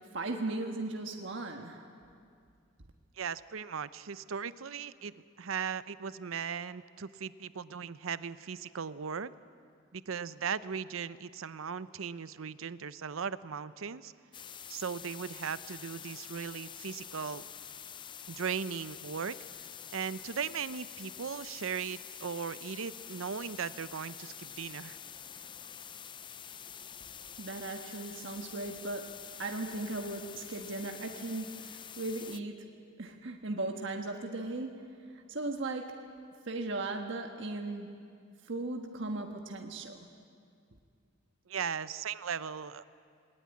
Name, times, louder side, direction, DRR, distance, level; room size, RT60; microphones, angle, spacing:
voice 1, 0.1-1.8 27.4-32.7 33.0-34.9 35.3-36.0 36.5-37.9 38.5-40.1, right 2 dB, 65° right, 3 dB, 1.4 m, -37 dB
voice 2, 3.2-9.3 9.9-14.1 14.7-17.4 18.3-25.0 41.5-42.8, right 6 dB, 85° right, 15 dB, 0.6 m, -38 dB
sound 1, 14.3-32.4, left 8 dB, 25° left, 0.5 m, -47 dB
20.0 x 19.0 x 9.6 m, 2.3 s
head